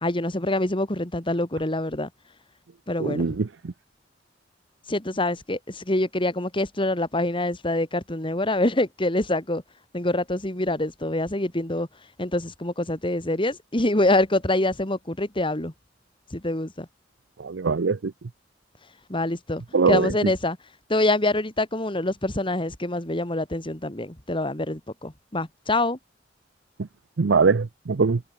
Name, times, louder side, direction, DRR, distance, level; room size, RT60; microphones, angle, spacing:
voice 1, 0.0-2.1 2.9-3.4 4.9-9.6 9.9-11.9 12.2-15.7 16.3-16.9 19.1-20.6 20.9-26.0, left 1 dB, 30° left, 2.6 m, -25 dB
voice 2, 3.1-3.4 17.4-18.1 19.7-20.1 27.2-28.2, right 4 dB, 90° right, 0.6 m, -21 dB
head